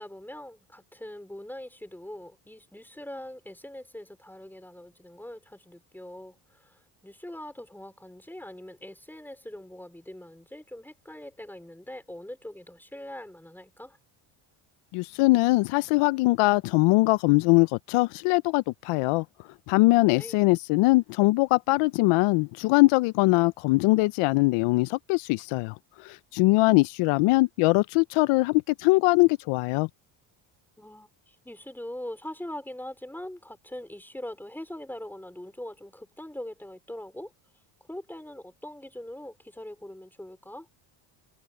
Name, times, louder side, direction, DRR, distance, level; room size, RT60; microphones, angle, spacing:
voice 1, 0.0-14.0 20.1-20.4 30.8-37.3 37.9-40.7, left 1 dB, 5° left, 4.8 m, -42 dB
voice 2, 14.9-19.2 19.7-25.7 26.0-29.9, left 23 dB, 80° left, 0.6 m, -22 dB
cardioid pair, 120°, 50 cm